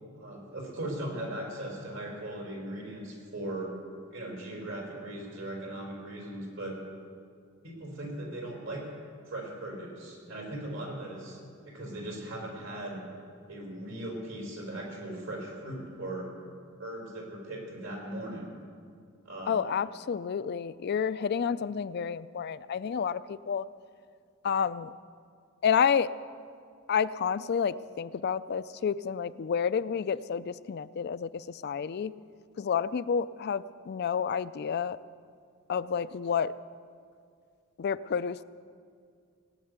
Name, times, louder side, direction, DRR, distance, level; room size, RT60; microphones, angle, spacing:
voice 1, 0.2-3.7 4.1-6.8 7.6-8.9 9.3-11.4 11.7-13.0 13.5-16.3 16.8-18.6 19.2-19.7, right 1 dB, 75° right, -1 dB, 4.9 m, -38 dB
voice 2, 19.5-23.7 24.4-24.9 25.6-26.1 26.9-32.1 32.6-35.0 35.7-36.5 37.8-38.4, left 7 dB, 50° left, 15 dB, 0.4 m, -30 dB
18.0 x 9.7 x 8.1 m, 2.2 s
head